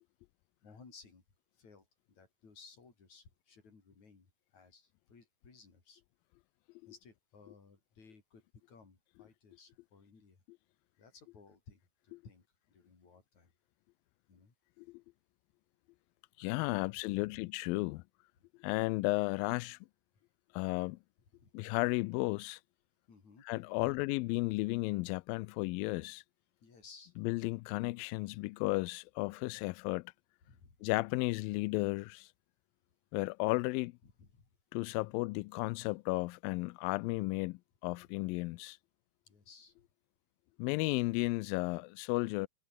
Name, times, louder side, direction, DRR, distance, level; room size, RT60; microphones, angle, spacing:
voice 1, 0.6-1.2 1.6-4.3 4.5-6.0 6.9-8.4 8.7-10.4 11.0-13.5 14.3-14.5 16.7-17.4 21.3-21.5 23.1-23.4 23.8-24.0 26.6-27.1 30.4-30.7 34.0-34.5 35.0-35.3 39.3-39.7, left 4 dB, 45° left, 6.4 m, -59 dB
voice 2, 16.4-18.0 18.6-19.8 20.5-21.0 21.5-22.6 23.5-26.2 27.2-30.1 30.8-32.3 33.1-33.9 34.7-38.8 40.6-42.5, left 23 dB, 85° left, 2.0 m, -34 dB
omnidirectional pair, 4.6 m